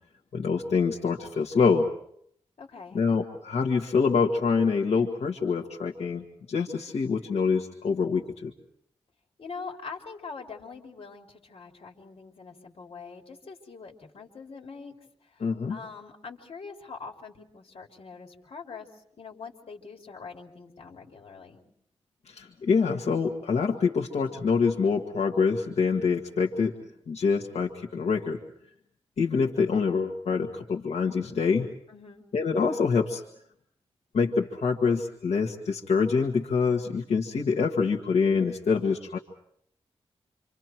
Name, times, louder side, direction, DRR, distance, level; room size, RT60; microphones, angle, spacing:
voice 1, 0.3-1.9 2.9-8.5 15.4-15.8 22.3-26.7 27.1-28.4 29.2-31.7 32.3-33.2 34.1-39.2, left 5 dB, 80° left, 0 dB, 1.9 m, -25 dB
voice 2, 2.6-3.0 9.4-21.6 31.9-32.2, left 5 dB, 65° left, 2 dB, 3.5 m, -43 dB
28.5 x 26.5 x 4.6 m, 0.68 s
wide cardioid pair, 120°, 11 cm